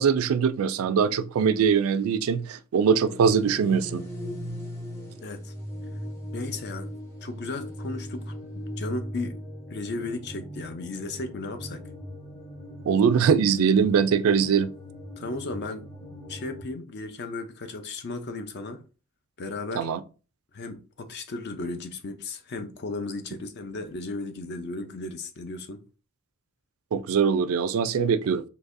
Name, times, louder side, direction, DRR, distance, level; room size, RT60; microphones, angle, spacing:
voice 1, 0.0-4.0 12.9-14.7 19.7-20.0 26.9-28.4, right 6 dB, 65° right, 0.3 m, -22 dB
sound 1, 3.0-16.6, equal, 10° left, 0.7 m, -39 dB
voice 2, 5.2-5.5 6.3-6.9 7.2-9.4 9.7-11.8 15.2-15.9 16.3-18.8 19.4-19.9 20.5-25.8, left 3 dB, 50° left, 0.5 m, -35 dB
3.9 x 2.8 x 2.5 m
head